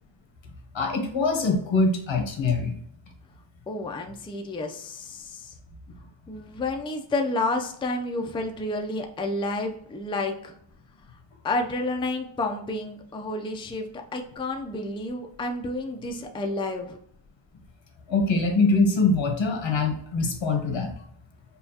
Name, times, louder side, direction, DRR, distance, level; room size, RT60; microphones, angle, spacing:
voice 1, 0.7-2.7 18.1-20.9, left 3 dB, 70° left, 3 dB, 1.0 m, -23 dB
voice 2, 3.7-5.5 6.3-10.6 11.4-17.0, left 2 dB, 10° left, 3 dB, 0.4 m, -30 dB
5.4 x 2.3 x 2.7 m, 0.70 s
wide cardioid pair, 130°, 46 cm